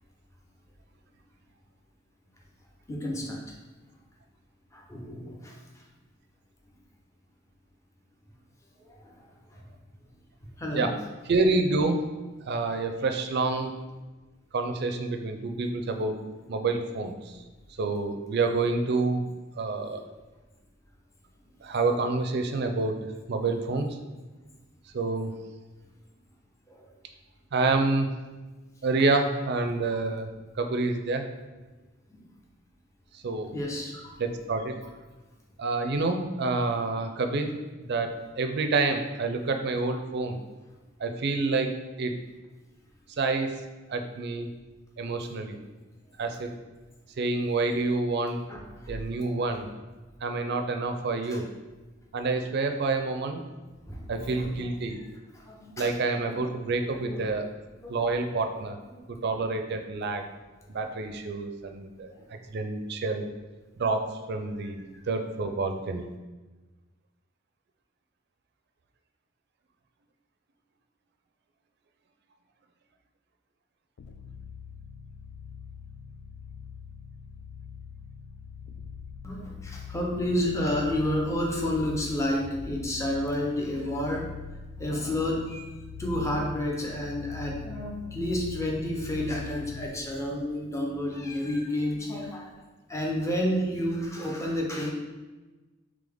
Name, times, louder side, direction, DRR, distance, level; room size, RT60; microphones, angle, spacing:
voice 1, 2.9-3.4 4.7-5.8 8.9-9.6 10.4-10.9 19.7-19.9 26.7-26.9 32.1-32.2 33.5-34.1 48.5-48.9 51.3-51.4 53.9-55.0 55.3-56.0 56.9-57.3 57.8-58.0 79.2-84.3 84.8-85.6 86.0-92.5 92.9-94.9, left 1 dB, 15° left, -1 dB, 0.6 m, -31 dB
voice 2, 11.3-12.0 12.4-13.7 14.5-16.2 16.5-17.4 17.8-19.2 19.5-20.0 21.6-23.0 23.3-23.9 24.9-25.3 27.5-28.1 28.8-30.3 30.6-31.2 33.1-33.5 34.2-34.8 35.6-37.5 37.8-40.4 41.0-41.7 42.0-42.1 43.2-43.5 43.9-44.5 45.0-45.6 46.2-46.5 47.2-48.4 48.9-49.7 50.2-51.4 52.1-53.4 54.1-55.0 55.8-57.5 57.9-58.8 59.2-60.3 60.7-62.1 62.5-63.3 63.8-66.1, right 3 dB, 55° right, 6 dB, 0.4 m, -28 dB
sound 1, 74.0-90.1, left 6 dB, 60° left, 0.3 m, -42 dB
3.8 x 3.2 x 3.4 m, 1.2 s
head